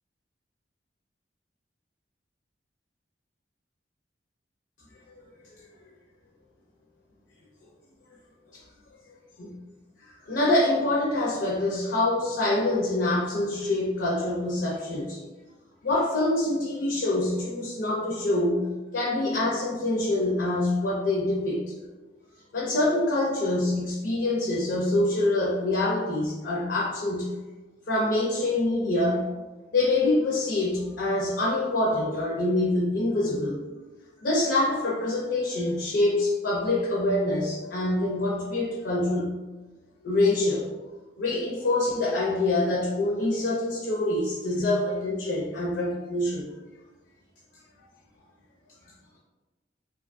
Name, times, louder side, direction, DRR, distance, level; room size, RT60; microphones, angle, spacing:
voice 1, 9.1-9.6 10.2-15.2 15.8-21.6 22.5-27.3 27.9-29.3 29.7-33.6 34.2-39.4 40.0-40.7 41.2-46.5, left 2 dB, 70° left, -4 dB, 0.5 m, -25 dB
2.7 x 2.2 x 2.4 m, 1.2 s
head